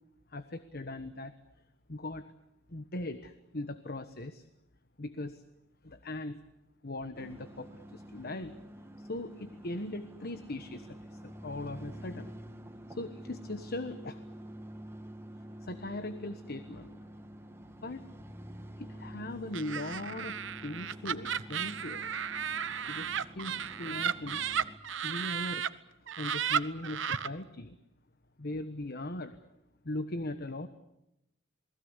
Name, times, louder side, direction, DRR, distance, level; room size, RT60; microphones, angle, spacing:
voice 1, 0.3-1.3 1.9-2.3 2.7-4.5 5.0-5.4 5.8-6.4 6.8-8.6 9.0-12.3 12.9-14.2 15.6-17.0 17.8-18.0 18.8-22.1 22.9-24.4 25.0-25.7 26.0-27.8 28.4-29.4 29.8-30.7, left 1 dB, 50° left, 10 dB, 1.3 m, -39 dB
sound 1, 7.1-24.8, equal, 10° right, 1.7 m, -48 dB
Laughter, 19.5-25.7 26.1-27.3, right 8 dB, 65° right, 1.0 m, -34 dB
28.5 x 20.5 x 8.2 m, 0.86 s
head